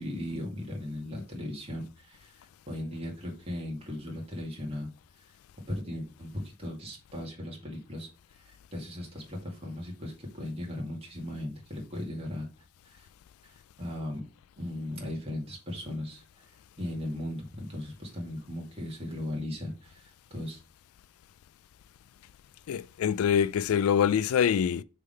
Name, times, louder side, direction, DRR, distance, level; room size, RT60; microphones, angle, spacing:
voice 1, 0.0-4.9 5.7-8.1 8.3-12.5 12.8-13.1 13.4-14.3 14.6-16.5 16.8-20.6, left 1 dB, 30° right, 2.2 m, -37 dB
voice 2, 22.7-24.8, left 8 dB, 85° left, 0.3 m, -25 dB
6.6 x 3.7 x 5.5 m
head